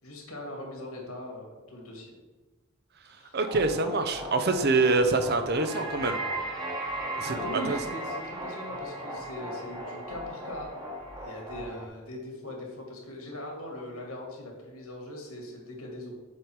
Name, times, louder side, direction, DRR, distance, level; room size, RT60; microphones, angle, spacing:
voice 1, 0.0-2.2 3.1-3.4 7.3-10.8 11.2-16.1, left 1 dB, 85° left, 0 dB, 2.2 m, -40 dB
voice 2, 3.3-6.2 7.2-7.4 7.7-7.8, right 3 dB, 45° right, 8 dB, 0.6 m, -25 dB
sound 1, 3.4-11.9, right 1 dB, 20° right, 1.3 m, -37 dB
7.5 x 5.2 x 4.6 m, 1.2 s
head